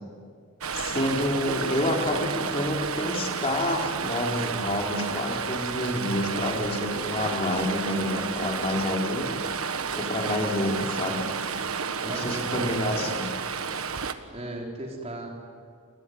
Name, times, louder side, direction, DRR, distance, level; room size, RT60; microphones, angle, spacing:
Stream, 0.6-14.1, right 5 dB, 80° right, 1.4 m, -31 dB
voice 1, 0.7-9.4 9.9-11.3 12.0-13.2, left 1 dB, 30° left, 0 dB, 4.4 m, -28 dB
voice 2, 10.3-11.0 12.0-13.1 14.3-15.3, right 1 dB, 30° right, -1 dB, 4.6 m, -38 dB
29.5 x 20.5 x 9.7 m, 2.1 s
head